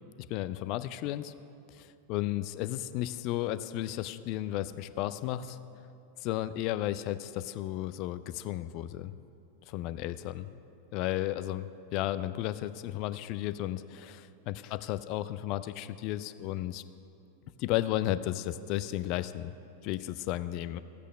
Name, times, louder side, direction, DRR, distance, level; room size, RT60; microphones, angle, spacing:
voice 1, 0.3-1.3 1.7-5.6 6.2-9.1 9.7-10.5 10.9-16.8 17.6-19.5 19.8-20.8, left 14 dB, 40° left, 14 dB, 0.4 m, -33 dB
14.5 x 8.3 x 6.3 m, 2.7 s
figure-of-eight pair, 90°, 0 cm